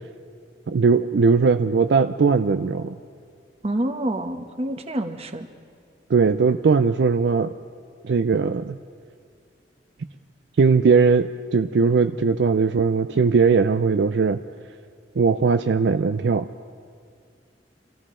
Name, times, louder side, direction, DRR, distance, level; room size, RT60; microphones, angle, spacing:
voice 1, 0.7-2.9 6.1-7.5 8.0-8.8 10.6-14.4 15.2-16.5, right 5 dB, 70° right, 9 dB, 0.4 m, -19 dB
voice 2, 3.6-5.5, right 1 dB, 35° right, 6 dB, 1.0 m, -27 dB
26.0 x 14.5 x 3.7 m, 2.2 s
head